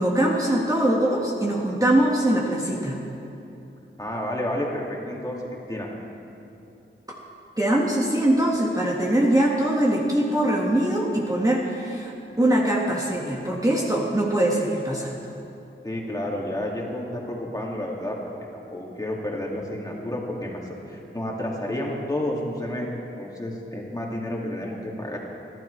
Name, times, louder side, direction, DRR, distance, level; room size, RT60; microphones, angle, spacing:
voice 1, 0.0-3.0 7.6-15.1, right 1 dB, 15° right, -3 dB, 1.6 m, -22 dB
voice 2, 4.0-5.9 15.8-18.2 18.7-20.6 20.9-22.9 23.2-25.2, left 1 dB, 20° left, -2 dB, 2.3 m, -30 dB
28.5 x 12.0 x 3.3 m, 2.8 s
wide cardioid pair, 100°, 20 cm